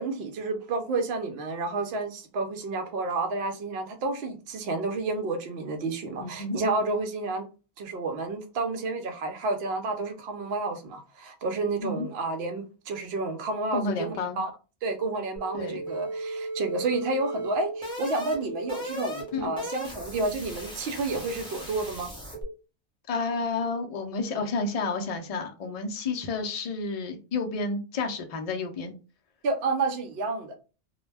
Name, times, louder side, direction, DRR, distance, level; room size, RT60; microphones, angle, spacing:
voice 1, 0.0-7.5 7.8-14.5 14.8-22.1 29.4-30.6, right 3 dB, 65° right, 0.8 m, -30 dB
voice 2, 6.2-6.6 11.8-12.1 13.7-14.4 15.5-15.8 19.3-19.5 23.1-28.9, left 4 dB, 55° left, 0.4 m, -30 dB
sound 1, 15.4-22.4, right 1 dB, 5° left, 1.0 m, -36 dB
2.2 x 2.1 x 3.2 m
omnidirectional pair, 1.2 m